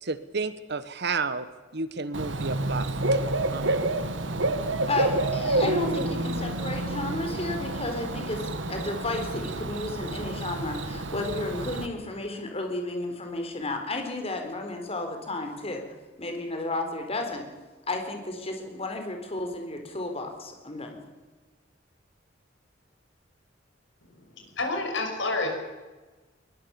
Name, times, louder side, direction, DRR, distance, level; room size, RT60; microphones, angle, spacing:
voice 1, 0.0-1.5 1.7-3.8, right 4 dB, 60° right, 13 dB, 1.4 m, -32 dB
Bird / Cricket, 2.1-11.9, right 2 dB, 75° right, 1.8 m, -29 dB
voice 2, 4.8-15.8 16.2-17.4 17.9-21.0, left 2 dB, 35° left, 4 dB, 4.1 m, -33 dB
voice 3, 24.0-25.5, left 2 dB, 75° left, 3 dB, 6.4 m, -30 dB
21.5 x 21.5 x 7.2 m, 1.3 s
head